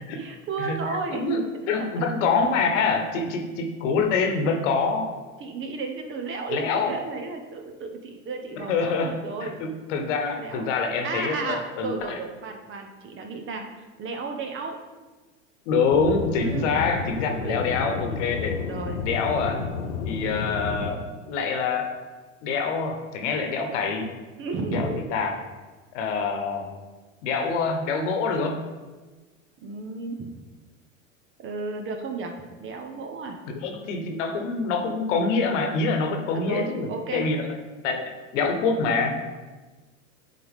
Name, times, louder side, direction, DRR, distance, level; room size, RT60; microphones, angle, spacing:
voice 1, 0.1-1.4 1.8-1.9 5.4-9.6 10.4-10.7 11.0-13.7 14.0-14.8 16.4-16.9 17.3-17.7 18.6-19.0 24.4-25.2 29.6-30.3 31.4-32.3 32.6-33.4 36.3-37.3, right 4 dB, 30° right, 4 dB, 1.0 m, -33 dB
voice 2, 1.1-1.4 1.7-5.1 6.5-7.0 8.6-9.1 9.4-12.2 15.7-18.6 19.0-19.6 20.0-21.9 22.4-24.1 24.7-25.4 25.9-26.7 27.2-28.6 33.5-37.5 37.8-39.2, left 4 dB, 65° left, 4 dB, 1.3 m, -25 dB
Aircraft / Engine, 15.9-20.9, left 5 dB, 90° left, 0.8 m, -31 dB
10.5 x 4.2 x 3.7 m, 1.3 s
hypercardioid pair, 100°, 40 cm